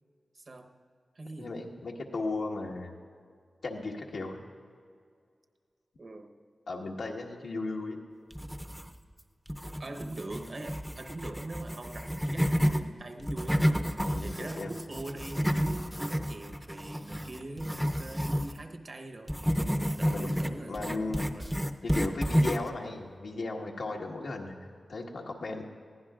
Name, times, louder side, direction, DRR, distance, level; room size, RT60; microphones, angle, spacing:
voice 1, 0.3-0.7 1.1-1.6 6.0-6.4 9.8-13.7 14.2-19.5 19.9-21.5, right 2 dB, 50° right, 6 dB, 0.9 m, -42 dB
voice 2, 1.4-2.9 3.6-4.4 6.7-8.0 14.1-14.7 20.0-20.4 20.7-21.2 21.8-25.6, left 3 dB, 80° left, -1 dB, 1.4 m, -36 dB
sound 1, 8.3-9.1 9.5-12.8 13.2-18.6 19.3-22.8, equal, ahead, 0.6 m, -30 dB
21.0 x 15.5 x 2.4 m, 2.1 s
wide cardioid pair, 85°, 0 cm